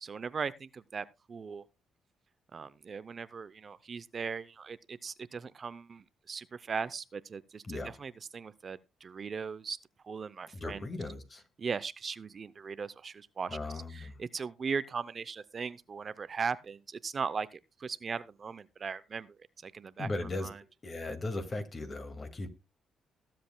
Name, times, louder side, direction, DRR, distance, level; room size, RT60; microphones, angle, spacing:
voice 1, 0.0-1.7 2.5-9.8 10.0-10.8 11.6-19.3 19.6-20.1 20.4-20.6, right 5 dB, 40° right, 0.6 m, -38 dB
voice 2, 10.5-11.4 13.5-14.2 20.0-20.5 20.8-22.5, left 2 dB, 35° left, 2.0 m, -37 dB
20.0 x 7.6 x 2.2 m
cardioid pair, 90°, 0 cm